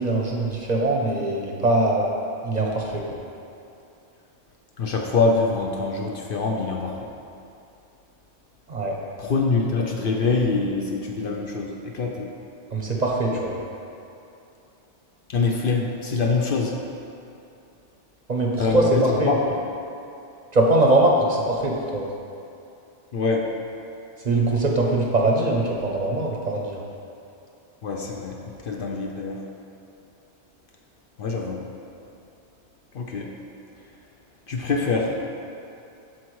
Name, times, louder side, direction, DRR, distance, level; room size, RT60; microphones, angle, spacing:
voice 1, 0.0-2.1 2.4-3.2 8.7-9.0 12.7-13.6 18.3-19.3 20.5-22.1 24.2-26.8, right 2 dB, 45° right, -1 dB, 0.7 m, -22 dB
voice 2, 4.8-7.0 9.2-12.3 15.3-16.7 18.6-19.4 23.1-23.5 27.8-28.4 28.6-29.4 31.2-31.6 32.9-33.3 34.5-35.2, left 4 dB, 60° left, 0 dB, 0.7 m, -24 dB
13.0 x 4.4 x 3.1 m, 2.7 s
omnidirectional pair, 1.2 m